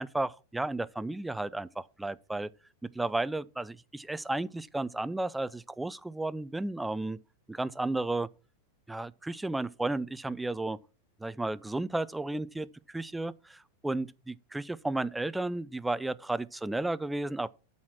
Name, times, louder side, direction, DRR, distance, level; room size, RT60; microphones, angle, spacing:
voice 1, 0.0-2.5 2.8-7.2 7.5-8.3 8.9-10.8 11.2-17.5, right 2 dB, 5° right, 0.4 m, -33 dB
12.5 x 4.3 x 5.9 m
figure-of-eight pair, 90°, 0 cm